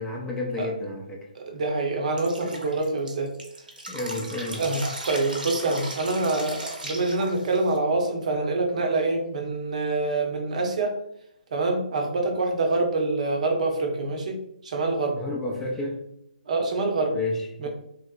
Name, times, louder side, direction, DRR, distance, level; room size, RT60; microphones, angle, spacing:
voice 1, 0.0-1.3 3.9-4.6 15.1-16.0 17.1-17.7, left 2 dB, 5° left, -3 dB, 0.4 m, -31 dB
voice 2, 1.3-3.3 4.6-11.0 11.5-14.4 14.6-15.2 16.5-17.2 17.6-17.7, right 3 dB, 55° right, 3 dB, 0.7 m, -26 dB
Drip, 2.2-7.8, right 1 dB, 85° right, 0.9 m, -37 dB
3.2 x 2.7 x 2.3 m, 0.75 s
figure-of-eight pair, 145°, 5 cm